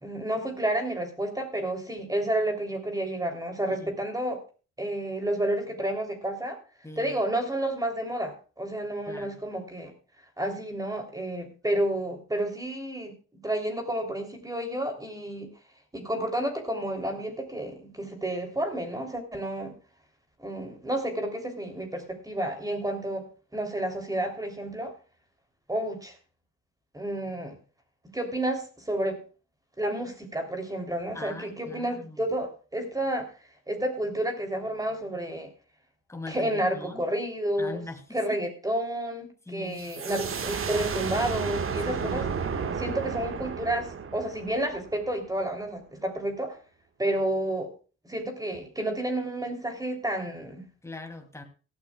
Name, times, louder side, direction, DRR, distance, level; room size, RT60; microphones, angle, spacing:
voice 1, 0.0-4.4 4.8-6.6 7.0-9.9 10.4-13.1 13.4-15.5 15.9-19.7 20.4-23.2 23.5-24.9 25.7-26.1 26.9-27.6 28.1-29.2 29.8-33.3 33.7-35.5 36.3-37.8 38.1-42.3 42.8-46.6 47.0-47.7 48.1-50.6, right 1 dB, 10° right, 4 dB, 3.4 m, -30 dB
voice 2, 6.8-7.2 9.1-9.4 31.1-32.2 36.1-37.0 37.6-38.4 39.5-39.8 41.8-42.3 50.8-51.4, left 2 dB, 10° left, 4 dB, 2.8 m, -41 dB
sound 1, 39.8-45.3, right 6 dB, 45° right, 1.7 m, -32 dB
17.5 x 13.0 x 2.4 m, 0.36 s
cardioid pair, 90°, 30 cm